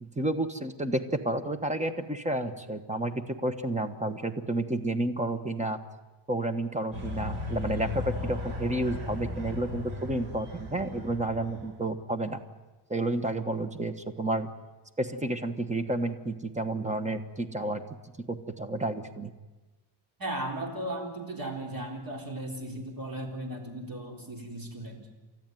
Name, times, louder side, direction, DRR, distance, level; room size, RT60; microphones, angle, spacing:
voice 1, 0.0-5.8 6.3-12.4 12.9-14.5 15.0-17.8 18.3-19.3, right 1 dB, 15° right, 9 dB, 1.2 m, -31 dB
sound 1, 6.9-11.8, left 2 dB, 75° right, 6.0 m, -37 dB
voice 2, 20.2-25.1, right 1 dB, 45° right, 2 dB, 4.0 m, -36 dB
30.0 x 13.5 x 9.2 m, 1.2 s
wide cardioid pair, 155°, 48 cm